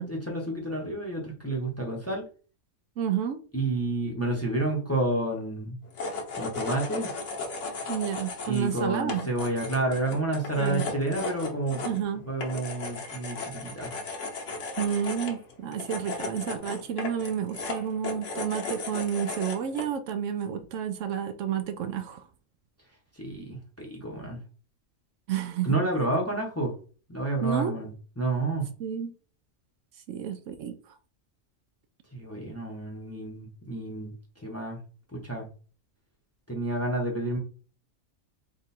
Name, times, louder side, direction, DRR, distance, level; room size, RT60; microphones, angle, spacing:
voice 1, 0.0-2.2 3.5-5.8 6.3-7.1 8.5-14.0 23.2-24.4 25.6-26.7 27.1-27.9 28.2-28.7 32.1-34.1 34.4-34.8 35.1-35.5 36.5-37.4, right 2 dB, 15° left, 0.7 m, -30 dB
voice 2, 3.0-3.4 7.9-9.3 10.6-10.8 11.8-12.2 14.8-22.3 25.3-25.8 27.4-27.7 28.8-29.1 30.1-30.9, right 8 dB, 75° right, 0.9 m, -30 dB
sound 1, 5.9-19.9, left 3 dB, 65° left, 1.2 m, -36 dB
3.7 x 2.4 x 4.2 m
omnidirectional pair, 1.4 m